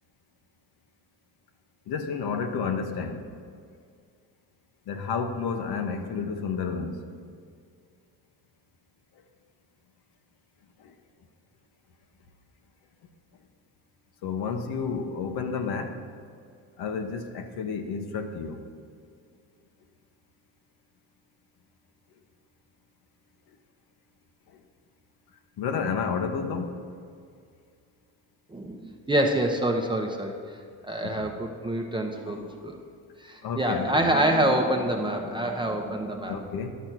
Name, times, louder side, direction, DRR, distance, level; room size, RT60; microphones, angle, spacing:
voice 1, 1.9-3.2 4.9-7.0 10.8-10.9 14.2-16.0 16.8-18.6 25.6-26.7 31.0-31.3 33.4-34.1 36.3-36.7, left 5 dB, 65° left, 5 dB, 1.1 m, -31 dB
voice 2, 28.5-30.3 30.8-32.8 33.2-36.7, right 1 dB, 10° right, 2 dB, 0.8 m, -26 dB
11.5 x 5.3 x 6.0 m, 2.2 s
cardioid pair, 105°, 40 cm